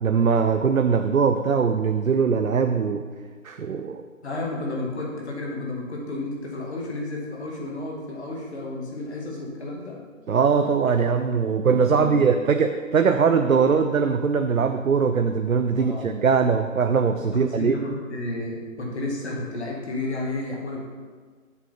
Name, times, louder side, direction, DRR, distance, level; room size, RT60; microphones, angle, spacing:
voice 1, 0.0-3.1 3.4-4.0 10.3-17.8, right 5 dB, 80° right, 7 dB, 0.6 m, -21 dB
voice 2, 4.2-10.0 11.9-12.3 15.7-16.3 17.3-20.9, left 2 dB, 50° left, -2 dB, 2.1 m, -32 dB
7.5 x 6.9 x 4.1 m, 1.5 s
figure-of-eight pair, 145°, 41 cm